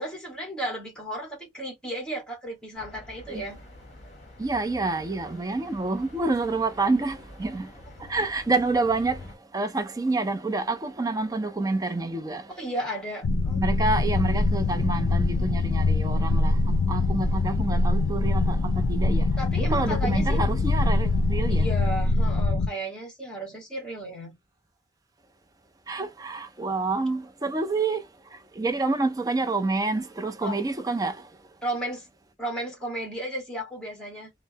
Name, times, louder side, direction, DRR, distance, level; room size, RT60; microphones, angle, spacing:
voice 1, 0.0-3.6 12.5-13.6 19.4-20.4 21.5-24.3 30.4-30.7 31.6-32.1 32.4-34.3, right 1 dB, 5° left, 1.1 m, -34 dB
sound 1, 2.7-9.3, left 1 dB, 35° left, 0.9 m, -47 dB
voice 2, 4.4-7.7 8.0-9.2 9.5-12.5 13.6-19.3 19.6-21.7 25.9-28.0 28.6-31.2, right 3 dB, 20° right, 0.4 m, -28 dB
sound 2, 13.2-22.7, left 3 dB, 80° left, 0.4 m, -23 dB
3.2 x 2.0 x 2.6 m
head